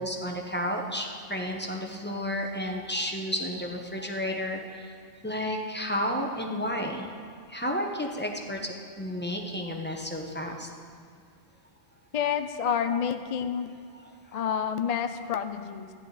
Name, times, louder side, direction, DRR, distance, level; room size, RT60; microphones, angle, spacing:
voice 1, 0.0-4.9 5.2-7.1 7.5-10.7, equal, 10° left, 1 dB, 0.9 m, -32 dB
voice 2, 12.1-13.7 14.3-15.9, left 8 dB, 50° left, 9 dB, 0.5 m, -29 dB
14.5 x 10.5 x 4.1 m, 2.4 s
omnidirectional pair, 1.2 m